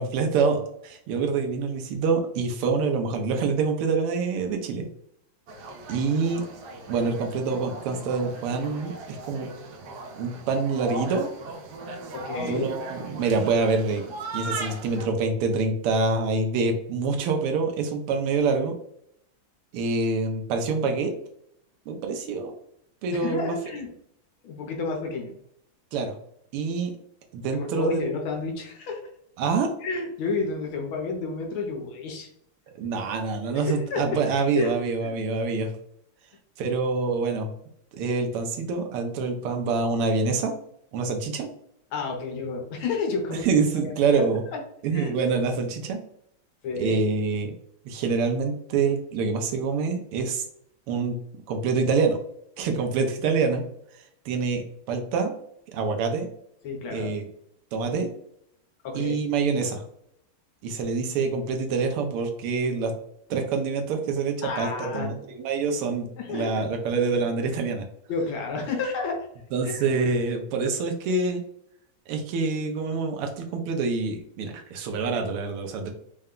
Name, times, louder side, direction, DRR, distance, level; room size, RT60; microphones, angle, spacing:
voice 1, 0.0-4.9 5.9-6.4 6.9-9.5 10.2-11.3 12.4-14.0 14.3-18.7 19.7-21.1 21.9-22.5 23.0-23.5 25.9-26.1 26.5-26.9 27.3-28.1 29.4-29.7 32.8-35.7 36.6-37.5 37.9-40.5 40.9-41.5 43.4-44.4 44.8-46.0 46.8-47.5 47.8-50.4 50.9-51.2 51.5-52.2 52.6-53.6 54.2-55.3 55.7-56.3 56.9-57.3 57.7-58.1 58.9-59.8 60.6-62.9 63.3-67.8 69.5-71.4 72.1-75.9, right 4 dB, 85° right, 4 dB, 1.6 m, -26 dB
sound 1, 5.5-15.1, right 3 dB, 70° right, 1.0 m, -38 dB
voice 2, 12.1-12.7 23.1-23.9 24.4-25.3 27.5-29.0 29.8-32.3 33.5-34.0 34.5-34.7 35.0-35.2 41.9-43.5 43.8-44.2 44.5-44.6 44.9-45.2 46.6-47.0 56.6-57.1 58.8-59.2 64.4-65.1 66.2-66.6 68.1-69.2 69.6-69.8, left 4 dB, 75° left, 2 dB, 1.6 m, -30 dB
4.4 x 2.2 x 3.7 m, 0.71 s
omnidirectional pair, 2.4 m